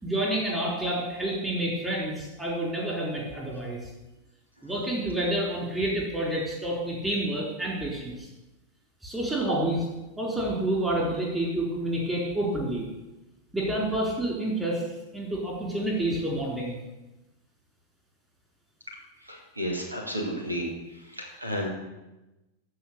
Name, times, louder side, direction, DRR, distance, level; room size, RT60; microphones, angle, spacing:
voice 1, 0.0-3.8 4.6-8.3 9.0-9.9 10.2-12.8 13.5-14.9 15.1-16.8, right 1 dB, 10° right, -3 dB, 3.7 m, -28 dB
voice 2, 19.2-20.7 21.0-21.7, equal, 85° right, 1 dB, 2.4 m, -32 dB
14.5 x 4.8 x 6.6 m, 1.0 s
figure-of-eight pair, 90°, 0 cm